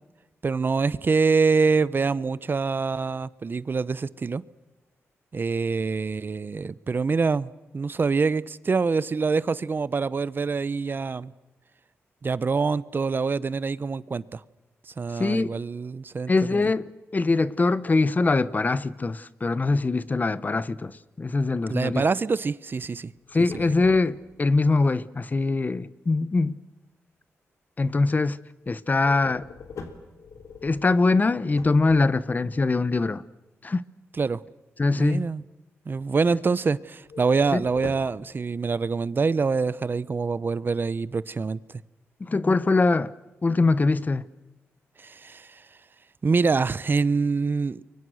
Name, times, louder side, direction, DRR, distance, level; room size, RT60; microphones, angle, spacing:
voice 1, 0.4-4.4 5.3-11.3 12.2-14.4 14.9-16.6 21.7-23.1 23.4-23.7 34.2-34.4 34.9-35.4 35.9-41.8 45.0-45.6 46.2-47.8, right 4 dB, 45° right, 0.8 m, -25 dB
voice 2, 15.2-15.5 16.3-22.0 23.3-26.6 27.8-28.4 28.7-29.5 30.6-33.2 33.6-33.8 34.8-35.3 37.5-37.6 42.2-43.1 43.4-44.2, left 3 dB, 35° left, 1.0 m, -23 dB
sound 1, 23.2-24.5 29.0-32.5 37.1-38.3, left 5 dB, 75° left, 3.2 m, -43 dB
29.5 x 24.0 x 6.5 m
cardioid pair, 70°, 5 cm